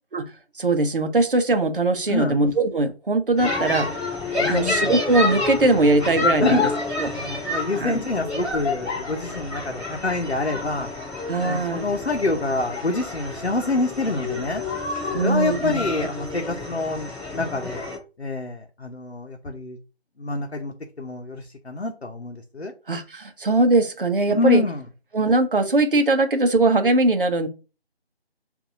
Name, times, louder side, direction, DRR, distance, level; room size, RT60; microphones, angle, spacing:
voice 1, 0.6-3.9 4.5-6.7 7.0-7.1 7.8-8.0 11.3-11.8 15.1-15.8 22.9-24.6 25.1-27.5, right 2 dB, 55° right, 7 dB, 0.8 m, -20 dB
sound 1, 3.4-18.0, left 3 dB, ahead, 0.6 m, -29 dB
voice 2, 4.3-4.9 6.4-6.6 7.1-10.9 11.4-14.6 15.1-17.9 18.2-19.8 20.2-22.7 24.3-24.8, left 2 dB, 90° left, 1 dB, 0.8 m, -26 dB
6.6 x 2.7 x 2.6 m, 0.32 s
figure-of-eight pair, 160°, 32 cm